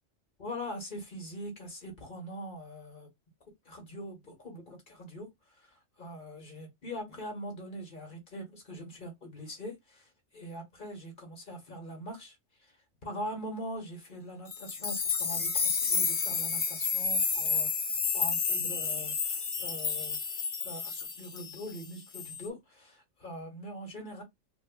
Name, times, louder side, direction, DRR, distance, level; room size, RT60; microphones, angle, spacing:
voice 1, 0.4-3.1 3.6-5.3 6.0-10.1 10.3-12.3 13.0-20.4 20.6-24.2, equal, 40° left, 1.5 m, -42 dB
sound 1, 14.5-21.8 22.1-22.5, left 5 dB, 55° left, 0.3 m, -31 dB
4.2 x 2.4 x 2.2 m
omnidirectional pair, 1.3 m